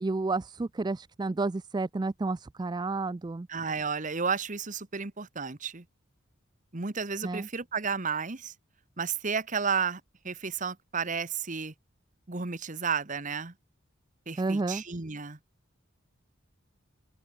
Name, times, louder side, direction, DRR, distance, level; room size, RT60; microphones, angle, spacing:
voice 1, 0.0-3.5 7.2-7.5 14.4-14.8, right 3 dB, 20° right, 0.3 m, -31 dB
voice 2, 3.5-5.8 6.7-8.5 9.0-11.7 12.3-13.5 14.3-15.4, right 5 dB, 40° right, 1.3 m, -32 dB
open air
head